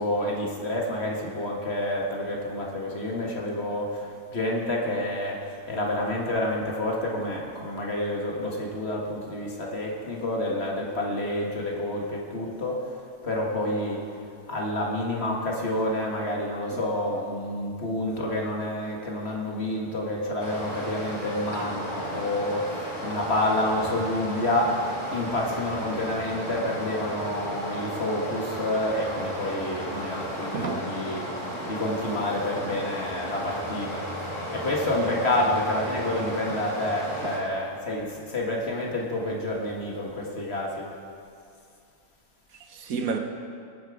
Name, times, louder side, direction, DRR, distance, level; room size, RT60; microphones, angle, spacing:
voice 1, 0.0-14.2 14.5-40.9, left 1 dB, 45° left, 1.9 m, -29 dB
Stream, 20.4-37.4, equal, 20° left, 2.5 m, -34 dB
voice 2, 30.5-30.9 31.5-31.7 42.5-43.2, right 5 dB, 70° right, 1.3 m, -32 dB
20.0 x 8.8 x 4.8 m
omnidirectional pair, 1.6 m